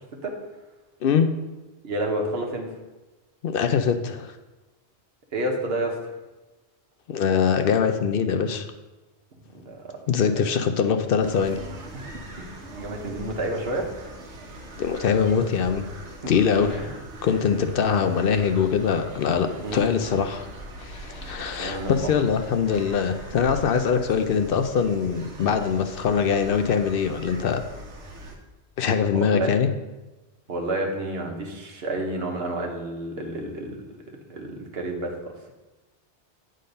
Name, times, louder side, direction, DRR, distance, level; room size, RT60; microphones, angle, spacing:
voice 1, 1.8-2.6 5.3-6.1 9.5-10.0 10.5-10.7 11.9-12.1 12.8-14.1 16.2-16.3 16.7-17.0 19.6-19.9 21.6-22.1 29.1-29.5 30.5-34.0 34.3-35.5, right 1 dB, 65° right, 1 dB, 1.3 m, -30 dB
voice 2, 3.4-4.3 7.1-8.7 10.1-11.6 14.8-15.9 16.3-16.8 17.2-20.5 20.8-27.6 28.8-29.7, left 6 dB, 65° left, 7 dB, 0.7 m, -23 dB
sound 1, 11.2-28.4, right 1 dB, 85° right, 1.3 m, -41 dB
8.3 x 3.9 x 5.2 m, 1.1 s
omnidirectional pair, 1.1 m